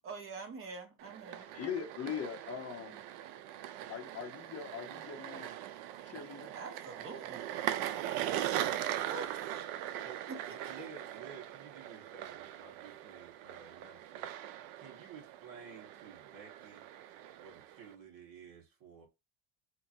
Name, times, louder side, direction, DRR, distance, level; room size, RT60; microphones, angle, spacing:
voice 1, 0.0-1.5 6.5-7.7 8.9-9.3 10.3-10.9, right 3 dB, 25° right, 0.9 m, -46 dB
sound 1, 1.0-17.9, right 12 dB, 90° right, 0.6 m, -40 dB
voice 2, 1.5-3.0 3.9-5.5 6.1-6.5, left 7 dB, 30° left, 0.8 m, -41 dB
voice 3, 10.0-14.3 14.8-16.9 17.4-19.0, right 6 dB, 45° right, 1.6 m, -53 dB
4.5 x 2.7 x 2.7 m
cardioid pair, 160°, 48 cm